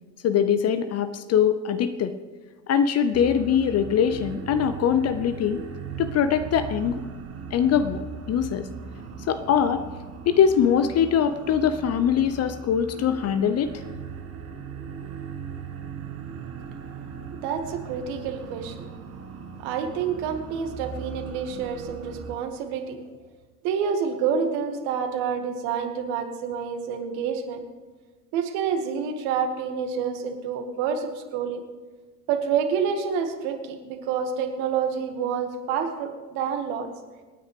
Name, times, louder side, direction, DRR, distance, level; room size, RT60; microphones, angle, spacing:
voice 1, 0.2-2.1 2.7-5.6 6.0-7.0 7.5-8.0 8.3-8.7 9.3-9.8 10.3-13.7, left 8 dB, 30° left, 11 dB, 0.7 m, -22 dB
sound 1, 3.1-22.3, right 6 dB, 30° right, 1.5 m, -38 dB
voice 2, 17.4-18.9 19.6-23.0 23.6-27.6 28.3-31.6 32.3-36.9, right 7 dB, 55° right, 5 dB, 2.0 m, -28 dB
26.5 x 9.3 x 3.4 m, 1.3 s
hypercardioid pair, 80°, 48 cm